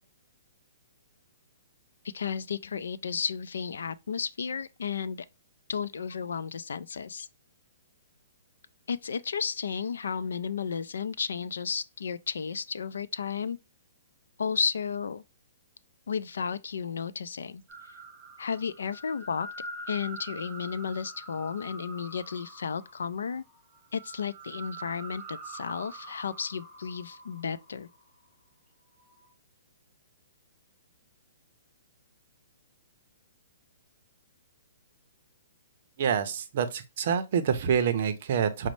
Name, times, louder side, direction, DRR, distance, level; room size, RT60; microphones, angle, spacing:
voice 1, 2.1-5.3 5.7-7.3 8.9-13.6 14.4-15.2 16.1-17.6 18.4-19.5 19.9-23.4 23.9-27.9, left 6 dB, 90° left, 0.3 m, -33 dB
sound 1, 17.7-28.3 28.8-29.3, right 2 dB, 5° right, 0.9 m, -45 dB
voice 2, 36.0-38.7, right 7 dB, 40° right, 0.5 m, -27 dB
5.1 x 2.0 x 3.0 m
hypercardioid pair, 170°, 0 cm